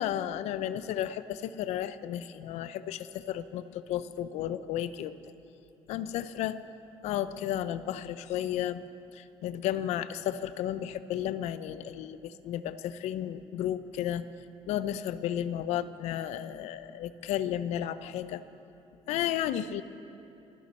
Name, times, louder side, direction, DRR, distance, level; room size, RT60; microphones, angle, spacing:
voice 1, 0.0-5.1 5.9-6.6 7.0-8.8 9.1-14.3 14.7-18.4 19.1-19.8, left 11 dB, 85° left, 14 dB, 0.6 m, -33 dB
26.0 x 11.5 x 4.3 m, 2.8 s
cardioid pair, 120°, 11 cm